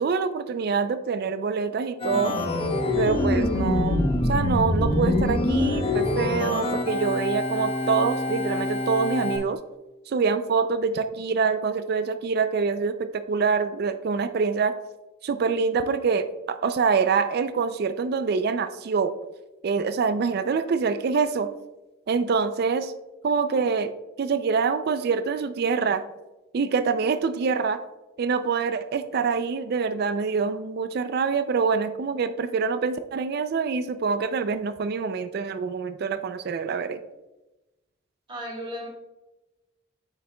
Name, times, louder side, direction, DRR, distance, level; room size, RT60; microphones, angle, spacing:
voice 1, 0.0-2.3 3.0-9.6 10.1-14.7 15.2-19.1 19.6-21.5 22.1-22.9 23.2-23.9 24.2-26.0 26.5-27.8 28.2-37.0, right 5 dB, 55° right, 11 dB, 0.4 m, -25 dB
Organ, 2.0-9.4, left 2 dB, 30° left, 0.8 m, -25 dB
voice 2, 38.3-38.9, equal, 30° right, -4 dB, 2.2 m, -34 dB
8.2 x 6.5 x 2.2 m, 1.0 s
head